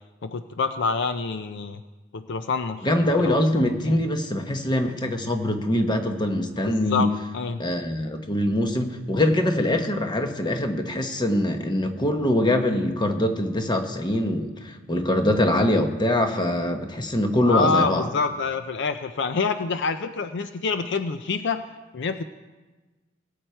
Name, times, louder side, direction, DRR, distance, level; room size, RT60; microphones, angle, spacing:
voice 1, 0.2-1.8 2.1-2.9 3.2-3.4 3.9-4.0 6.6-7.1 7.3-7.6 17.5-21.6 21.9-22.2, left 4 dB, 65° left, 9 dB, 0.5 m, -26 dB
voice 2, 2.8-7.1 7.6-18.1, left 1 dB, 25° left, 5 dB, 1.1 m, -23 dB
19.5 x 8.3 x 4.5 m, 1.2 s
head